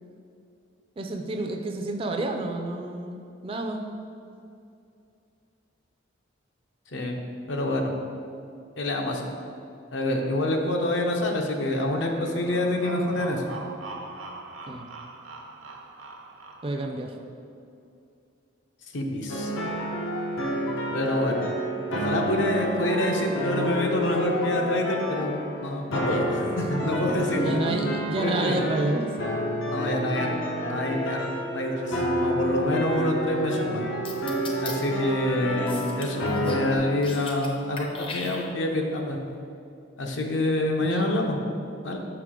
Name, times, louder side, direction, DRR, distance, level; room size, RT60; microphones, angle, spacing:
voice 1, 1.0-3.9 13.2-13.3 14.7-14.9 16.6-17.2 26.6-26.7 27.0-27.1 27.4-29.1 40.8-41.1, right 2 dB, 30° right, 4 dB, 0.3 m, -30 dB
voice 2, 6.9-7.2 7.5-7.9 8.8-9.2 9.9-13.4 18.9-19.5 20.9-21.5 21.9-27.6 28.2-28.6 29.7-30.3 30.6-31.3 31.5-33.9 34.6-39.2 40.0-41.4 41.8-42.0, left 1 dB, 70° left, 2 dB, 0.7 m, -27 dB
sound 1, 11.8-17.0, right 2 dB, 80° right, 0.7 m, -41 dB
sound 2, 19.3-36.8, equal, 90° left, 1.0 m, -29 dB
sound 3, 34.0-34.7 35.7-36.6 36.9-37.5 37.8-38.8, left 3 dB, 25° left, 0.5 m, -38 dB
6.0 x 4.8 x 3.7 m, 2.5 s
head